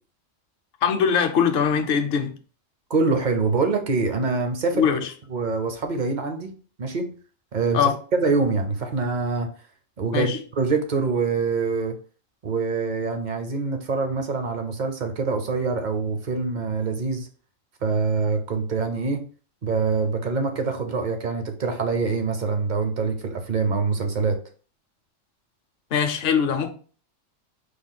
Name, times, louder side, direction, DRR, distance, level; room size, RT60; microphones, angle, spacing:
voice 1, 0.8-2.3 4.7-5.1 7.7-8.0 10.1-10.4 25.9-26.7, left 7 dB, 60° left, 0.8 m, -21 dB
voice 2, 2.9-4.9 5.3-6.5 6.8-7.1 7.5-9.5 10.0-12.0 12.4-17.3 17.8-19.2 19.6-24.4, right 4 dB, 45° right, 0.6 m, -25 dB
5.0 x 2.3 x 3.8 m
omnidirectional pair, 1.3 m